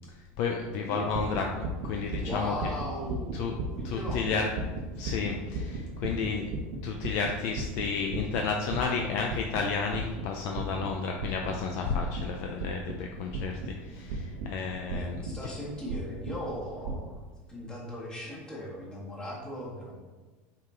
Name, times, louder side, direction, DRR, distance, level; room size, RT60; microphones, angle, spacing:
voice 1, 0.4-2.5 3.3-3.5 3.8-4.5 5.0-6.4 6.8-15.2, left 5 dB, 45° left, 2 dB, 0.6 m, -32 dB
sound 1, 0.9-17.1, right 2 dB, 80° right, 1.0 m, -37 dB
voice 2, 2.2-4.5 14.9-17.2 17.5-19.9, left 1 dB, 15° left, -5 dB, 1.8 m, -38 dB
8.6 x 4.8 x 3.8 m, 1.3 s
supercardioid pair, 175°, 6 cm